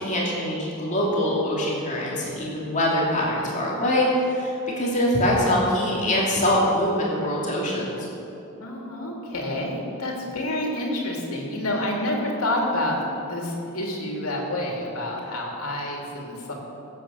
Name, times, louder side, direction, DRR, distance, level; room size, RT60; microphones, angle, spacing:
voice 1, 0.0-8.1, left 1 dB, 35° left, -4 dB, 2.9 m, -23 dB
voice 2, 8.6-16.5, left 1 dB, 75° left, 0 dB, 2.9 m, -28 dB
16.0 x 8.1 x 7.2 m, 2.9 s
head